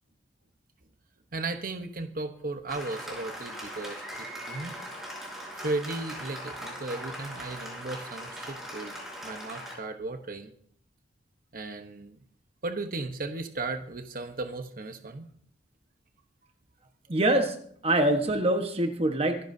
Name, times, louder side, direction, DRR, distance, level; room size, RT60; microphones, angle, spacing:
voice 1, 1.3-4.8 5.5-8.9 9.2-10.5 11.5-12.2 12.6-15.3, right 2 dB, 55° right, 7 dB, 1.1 m, -35 dB
Applause, 2.7-9.8, equal, ahead, 5.0 m, -40 dB
voice 2, 17.1-17.6 17.8-19.4, right 1 dB, 35° right, 5 dB, 1.3 m, -24 dB
25.5 x 11.0 x 2.8 m, 0.62 s
head